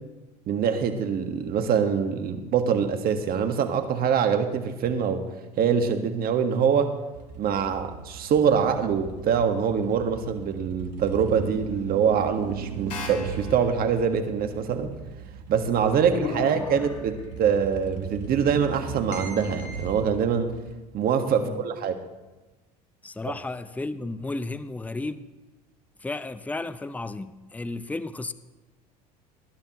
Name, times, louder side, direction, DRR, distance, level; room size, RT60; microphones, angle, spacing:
voice 1, 0.5-5.3 5.6-6.9 7.4-14.9 15.5-20.5 20.9-21.9, right 7 dB, 50° right, 7 dB, 1.6 m, -24 dB
sound 1, 7.1-20.7, right 6 dB, 90° right, 1.4 m, -39 dB
sound 2, 12.9-13.9 16.1-17.3 19.1-19.8, left 4 dB, 90° left, 3.0 m, -36 dB
voice 2, 16.1-16.9 21.4-21.6 23.0-25.3 26.0-28.3, left 2 dB, 5° left, 13 dB, 0.6 m, -34 dB
19.0 x 11.5 x 3.1 m, 1.1 s
hypercardioid pair, 80°, 20 cm